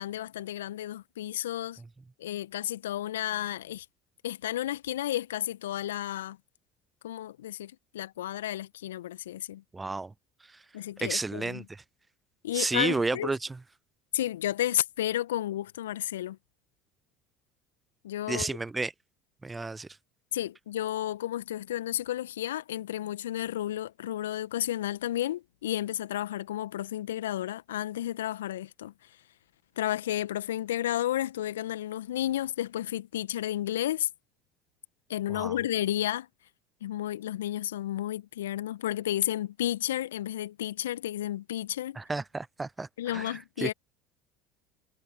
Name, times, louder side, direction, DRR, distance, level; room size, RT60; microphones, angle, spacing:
voice 1, 0.0-1.8 2.2-3.8 4.2-6.4 7.0-9.6 10.7-11.6 12.4-13.3 14.1-16.4 18.0-18.5 20.3-28.9 29.8-34.1 35.1-36.3 36.8-42.0 43.0-43.7, left 12 dB, 75° left, 1.7 m, -32 dB
voice 2, 9.7-10.1 11.0-11.8 12.5-13.5 18.3-18.9 19.4-19.9 35.3-35.6 42.0-43.7, right 3 dB, 15° right, 0.6 m, -31 dB
figure-of-eight pair, 65°, 0 cm